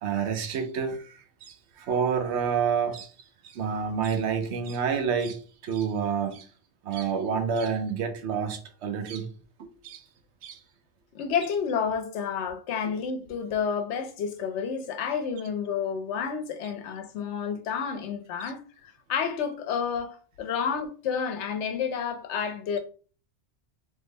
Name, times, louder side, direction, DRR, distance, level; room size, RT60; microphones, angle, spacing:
voice 1, 0.0-3.1 3.4-6.5 6.8-9.3 9.8-10.0 10.4-10.6 18.4-18.5, right 6 dB, 75° right, 0.8 m, -29 dB
voice 2, 11.1-22.8, left 6 dB, 80° left, 0.9 m, -30 dB
3.4 x 2.0 x 3.2 m
omnidirectional pair, 1.2 m